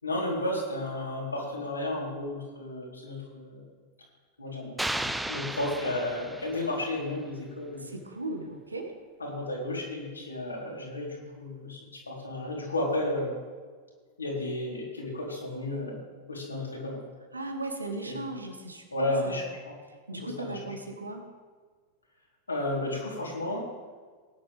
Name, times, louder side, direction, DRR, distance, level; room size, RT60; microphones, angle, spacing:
voice 1, 0.0-3.6 4.4-7.9 9.2-11.8 12.1-13.4 14.2-16.0 16.3-17.0 18.1-18.2 18.9-19.7 20.1-20.7 22.5-23.7, left 1 dB, 80° left, -3 dB, 3.9 m, -33 dB
sound 1, 4.8-6.9, right 1 dB, 5° right, 0.5 m, -34 dB
voice 2, 7.8-8.9 17.3-19.4 20.1-21.2, right 2 dB, 80° right, 4 dB, 1.7 m, -37 dB
19.0 x 10.5 x 3.6 m, 1.5 s
figure-of-eight pair, 90°, 0 cm